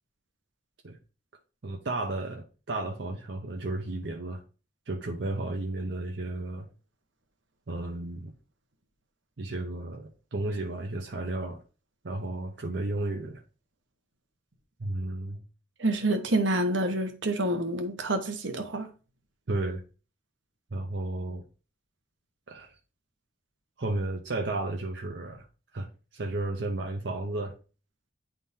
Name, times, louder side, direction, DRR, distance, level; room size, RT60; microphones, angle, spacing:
voice 1, 1.6-4.4 4.9-6.7 7.7-8.3 9.4-11.6 12.0-13.4 14.8-15.4 19.5-19.8 20.7-21.4 22.5-22.8 23.8-25.4 25.7-27.5, right 2 dB, 65° right, 0.7 m, -33 dB
voice 2, 15.8-18.9, right 1 dB, 85° right, 1.1 m, -27 dB
9.9 x 3.7 x 2.7 m
head